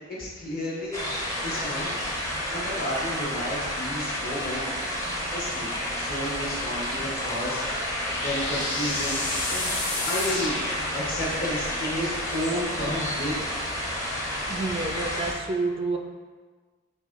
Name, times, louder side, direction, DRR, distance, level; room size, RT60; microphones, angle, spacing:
voice 1, 0.1-1.0 1.4-2.1 2.5-7.6 8.1-9.2 9.5-10.5 10.9-13.4, equal, 45° left, -6 dB, 1.2 m, -32 dB
sound 1, 0.9-15.3, equal, 15° left, 0.7 m, -31 dB
sound 2, 6.9-11.5, left 2 dB, 65° left, 0.9 m, -32 dB
voice 2, 14.5-16.0, right 3 dB, 30° right, 4 dB, 0.3 m, -29 dB
4.7 x 2.2 x 3.5 m, 1.4 s
head